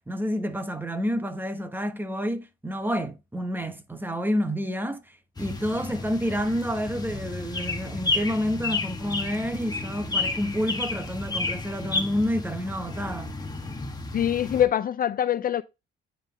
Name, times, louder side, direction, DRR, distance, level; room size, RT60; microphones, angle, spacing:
voice 1, 0.1-13.4, equal, 10° right, 1.0 m, -29 dB
sound 1, 5.4-14.7, left 3 dB, 20° left, 1.3 m, -32 dB
voice 2, 14.1-15.6, left 10 dB, 45° left, 0.4 m, -24 dB
9.0 x 3.7 x 3.2 m
cardioid pair, 90°, 20 cm